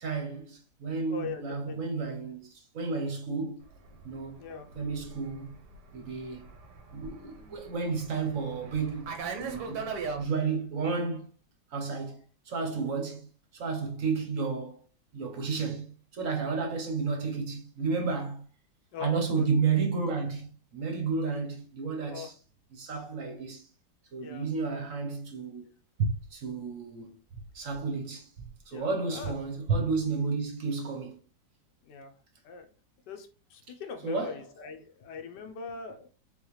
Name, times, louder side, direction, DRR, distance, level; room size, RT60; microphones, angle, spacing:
voice 1, 0.0-3.6 4.0-4.4 4.7-5.5 5.9-6.5 6.9-9.2 9.4-11.3 11.7-12.2 12.5-13.3 13.5-14.8 15.1-18.4 19.0-22.4 22.7-23.7 24.1-25.7 26.0-27.1 27.5-31.2 34.0-34.5, right 4 dB, 55° right, 1.2 m, -32 dB
voice 2, 1.0-1.9 4.4-4.7 18.9-19.5 22.1-22.3 24.2-24.5 28.7-29.3 31.8-32.1 32.4-32.7 33.1-36.1, left 6 dB, 85° left, 1.4 m, -41 dB
Fixed-wing aircraft airplane, 3.7-10.2, right 5 dB, 85° right, 1.5 m, -40 dB
4.0 x 3.8 x 3.1 m
omnidirectional pair, 1.8 m